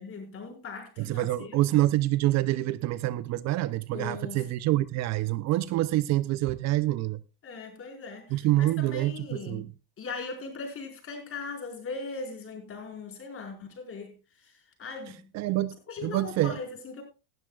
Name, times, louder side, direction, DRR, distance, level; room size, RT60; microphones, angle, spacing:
voice 1, 0.0-1.6 3.9-4.4 7.4-9.7 10.0-15.3 15.9-17.0, left 4 dB, 30° left, 4.7 m, -39 dB
voice 2, 1.0-7.2 8.3-9.7 15.3-15.8 16.0-16.6, right 16 dB, 35° right, 0.5 m, -26 dB
18.0 x 12.0 x 2.3 m
supercardioid pair, 130°, 46 cm